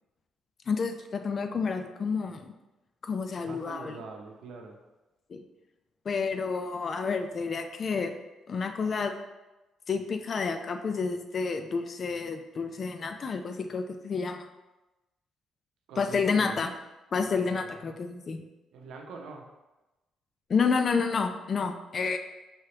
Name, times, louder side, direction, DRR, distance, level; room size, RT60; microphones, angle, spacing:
voice 1, 0.7-2.5 3.0-4.0 5.3-5.4 6.1-8.1 8.5-9.1 9.9-14.5 16.0-16.7 17.1-18.4 20.5-22.2, left 5 dB, 45° left, 7 dB, 0.4 m, -29 dB
voice 2, 3.4-4.8 15.9-16.6 17.2-17.7 18.7-19.4, right 4 dB, 80° right, 2 dB, 0.7 m, -44 dB
4.7 x 3.2 x 2.9 m, 1.0 s
cardioid pair, 90°, 0 cm